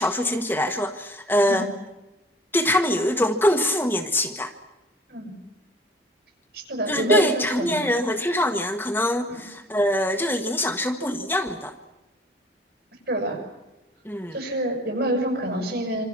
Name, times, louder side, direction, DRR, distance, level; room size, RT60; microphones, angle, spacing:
voice 1, 0.0-1.7 2.5-4.5 6.9-11.7 14.0-14.4, left 1 dB, 10° left, 5 dB, 1.4 m, -23 dB
voice 2, 6.5-7.8 9.3-9.4 13.1-13.4 14.3-16.1, right 1 dB, 65° right, 3 dB, 6.8 m, -26 dB
26.5 x 26.5 x 6.1 m, 1.0 s
head